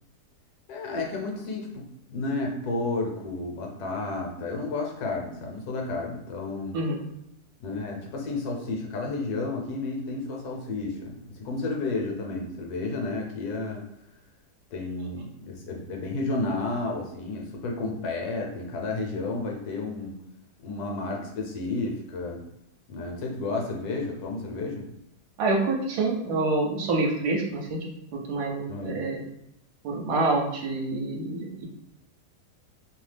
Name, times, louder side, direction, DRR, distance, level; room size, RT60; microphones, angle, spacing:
voice 1, 0.7-6.8 7.6-13.8 14.7-20.2 20.6-22.4 22.9-24.9 28.7-29.0, left 3 dB, 75° left, 0 dB, 1.1 m, -32 dB
voice 2, 25.4-27.8 28.1-29.2 29.8-31.6, right 3 dB, 75° right, -1 dB, 1.1 m, -27 dB
2.8 x 2.0 x 3.2 m, 0.78 s
omnidirectional pair, 1.8 m